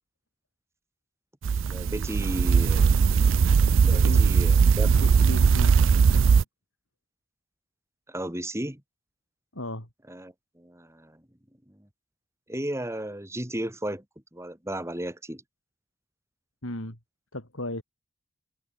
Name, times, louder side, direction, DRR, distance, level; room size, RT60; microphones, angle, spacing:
sound 1, 1.4-6.4, right 5 dB, 65° right, 0.4 m, -20 dB
voice 1, 1.7-3.0 3.8-4.9 8.1-8.8 10.1-11.2 12.5-14.0 14.3-15.4, right 1 dB, 15° right, 2.6 m, -34 dB
voice 2, 3.9-4.3 4.9-5.7 6.1-6.4 9.5-9.9 16.6-17.0 17.3-17.8, left 1 dB, 75° left, 6.0 m, -36 dB
head